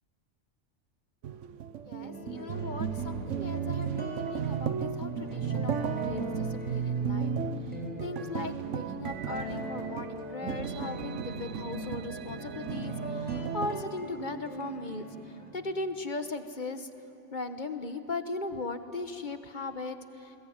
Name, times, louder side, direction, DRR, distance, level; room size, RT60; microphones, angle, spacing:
sound 1, 1.2-13.8, right 7 dB, 80° right, 1.2 m, -34 dB
voice 1, 1.8-7.3 8.0-16.9 17.3-20.3, left 3 dB, 40° left, 8 dB, 1.4 m, -38 dB
sound 2, 2.0-15.5, equal, 10° right, 4.3 m, -42 dB
29.0 x 22.0 x 9.5 m, 2.7 s
omnidirectional pair, 1.3 m